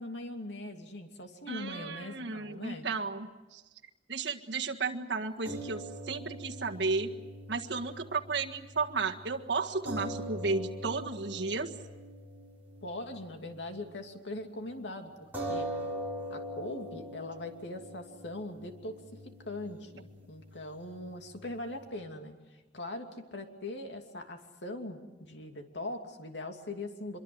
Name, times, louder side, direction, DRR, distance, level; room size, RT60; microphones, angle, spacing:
voice 1, 0.0-2.9 12.8-15.7 16.3-22.3 22.7-27.2, left 1 dB, 80° left, 4 dB, 2.7 m, -41 dB
voice 2, 1.5-3.6 4.1-7.1 7.5-11.7, right 4 dB, 70° right, 2 dB, 1.7 m, -33 dB
sound 1, 5.5-14.0 14.3-14.4 15.3-21.9, right 1 dB, 10° right, 6.6 m, -43 dB
25.0 x 23.5 x 7.9 m, 1.2 s
head